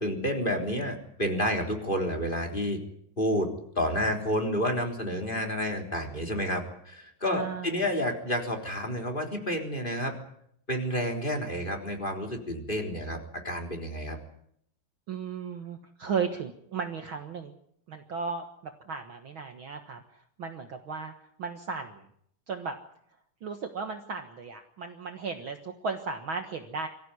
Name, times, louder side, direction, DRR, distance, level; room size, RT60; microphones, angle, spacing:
voice 1, 0.0-2.8 3.2-3.5 3.8-10.1 10.7-13.2 13.4-14.2, equal, 15° left, 4 dB, 3.5 m, -30 dB
voice 2, 7.3-7.8 15.1-17.5 17.9-21.1 21.4-22.0 22.5-22.8 23.4-26.9, right 5 dB, 75° right, 6 dB, 1.1 m, -35 dB
24.0 x 15.5 x 9.8 m, 0.70 s
omnidirectional pair, 4.6 m